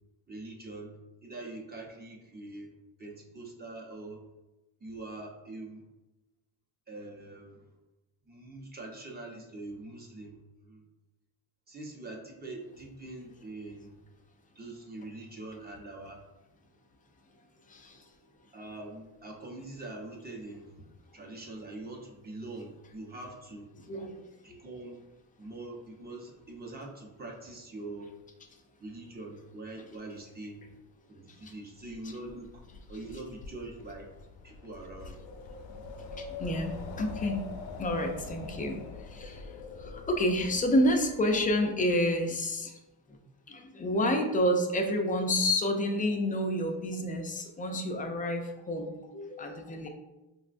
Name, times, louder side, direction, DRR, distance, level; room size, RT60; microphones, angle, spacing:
voice 1, 0.3-2.7 3.0-4.3 4.8-5.9 6.9-7.7 8.3-10.8 11.7-14.0 14.5-16.2 18.5-20.9 21.1-23.7 24.4-25.0 25.4-28.1 28.8-30.7 31.1-32.6 32.9-34.1 34.4-35.2, right 2 dB, 20° right, 0 dB, 0.7 m, -43 dB
voice 2, 17.7-18.1 23.9-24.6 31.3-31.5 36.0-37.4 37.8-42.8 43.1-43.2 43.5-49.9, left 1 dB, 20° left, 3 dB, 0.3 m, -29 dB
Wind, 31.9-42.0, left 3 dB, 75° left, 0.6 m, -44 dB
5.1 x 2.2 x 2.4 m, 1.0 s
cardioid pair, 120°, 45 cm